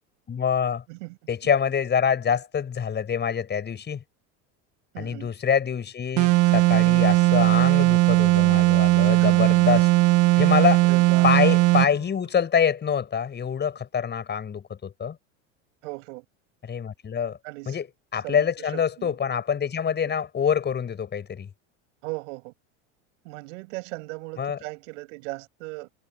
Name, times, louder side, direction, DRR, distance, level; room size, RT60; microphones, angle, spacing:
voice 1, 0.3-0.8 1.3-4.0 5.0-9.9 10.4-10.8 11.2-15.2 16.7-17.4 17.7-17.9 18.1-21.5 24.4-24.6, left 7 dB, 30° left, 7.2 m, -25 dB
voice 2, 4.9-5.3 9.2-9.7 10.8-11.5 15.8-16.2 17.4-17.8 18.2-19.2 22.0-22.5 23.2-25.9, right 26 dB, 75° right, 6.9 m, -38 dB
sound 1, 6.2-11.9, right 19 dB, 50° right, 1.2 m, -18 dB
supercardioid pair, 115°, 37 cm